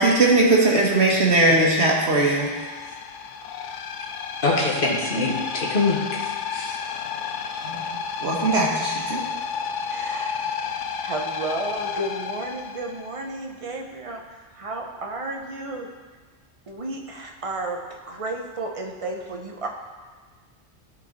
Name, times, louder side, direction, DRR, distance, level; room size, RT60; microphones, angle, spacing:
voice 1, 0.0-2.5 7.6-9.2, right 2 dB, 65° right, -2 dB, 1.7 m, -20 dB
sound 1, 2.4-13.2, left 6 dB, 90° left, 0.9 m, -31 dB
voice 2, 4.4-6.2 6.5-6.8, left 3 dB, 50° left, -3 dB, 1.6 m, -24 dB
voice 3, 9.9-10.3 11.0-15.9 16.7-19.7, right 2 dB, 30° right, 2 dB, 0.8 m, -32 dB
12.5 x 4.7 x 4.0 m, 1.5 s
omnidirectional pair, 1.2 m